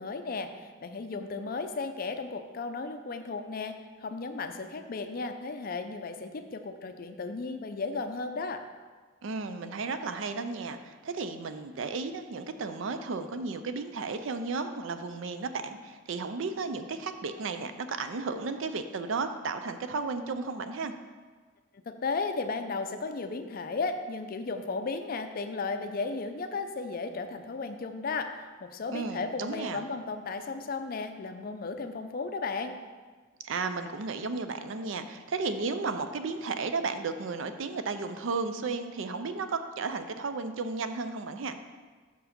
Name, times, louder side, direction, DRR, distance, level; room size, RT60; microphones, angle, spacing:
voice 1, 0.0-8.6 21.9-32.8, left 4 dB, 45° left, 8 dB, 0.4 m, -35 dB
voice 2, 9.2-20.9 28.9-29.8 33.4-41.6, right 4 dB, 70° right, 9 dB, 0.4 m, -34 dB
6.2 x 4.8 x 5.1 m, 1.4 s
head